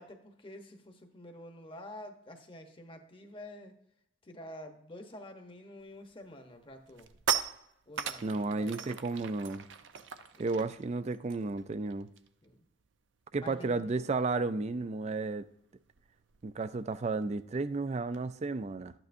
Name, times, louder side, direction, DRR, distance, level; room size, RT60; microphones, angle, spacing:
voice 1, 0.0-3.7 4.2-7.1 7.9-9.2 10.3-10.6 12.4-12.6 13.4-13.9, left 1 dB, 30° left, 0.9 m, -49 dB
sound 1, 5.9-6.1 6.5-12.5 12.7-13.0 13.2-18.3, right 8 dB, 85° right, 0.6 m, -40 dB
voice 2, 8.2-9.7 10.4-12.1 13.3-15.4 16.4-18.9, right 3 dB, 35° right, 0.4 m, -33 dB
12.0 x 9.1 x 2.6 m
head